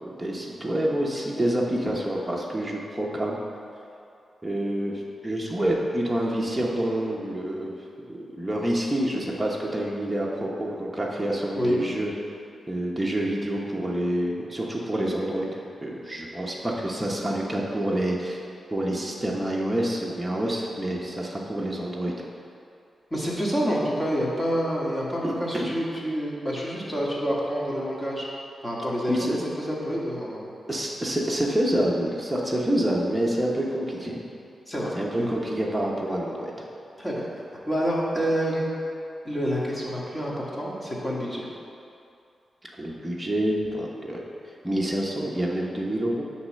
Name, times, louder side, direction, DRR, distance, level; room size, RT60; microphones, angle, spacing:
voice 1, 0.0-3.4 4.4-7.7 8.1-12.1 12.7-18.4 18.7-22.1 25.2-25.7 29.1-29.4 30.7-34.2 34.9-36.5 42.8-44.2 44.6-46.2, right 1 dB, 10° right, -4 dB, 1.1 m, -27 dB
voice 2, 23.1-28.3 28.6-30.5 34.7-35.3 37.0-37.4 37.7-38.7 39.2-41.5, equal, 20° left, -5 dB, 1.9 m, -28 dB
9.6 x 3.4 x 6.4 m, 2.6 s
cardioid pair, 80°, 0 cm